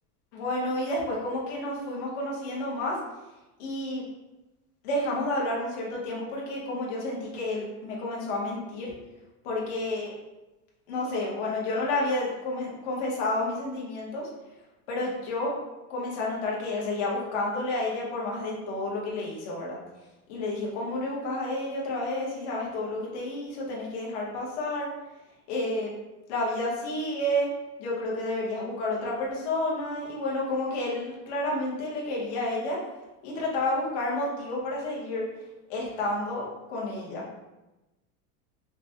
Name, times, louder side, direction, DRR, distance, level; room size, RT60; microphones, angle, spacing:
voice 1, 0.3-3.0 3.6-4.0 4.8-8.9 9.4-10.1 10.9-14.3 14.9-15.5 15.9-19.8 20.3-24.9 25.5-25.9 26.3-27.5 27.8-32.8 33.2-35.2 35.7-37.2, left 1 dB, 50° left, -3 dB, 1.1 m, -30 dB
5.0 x 2.2 x 2.7 m, 1.0 s
supercardioid pair, 175°, 45 cm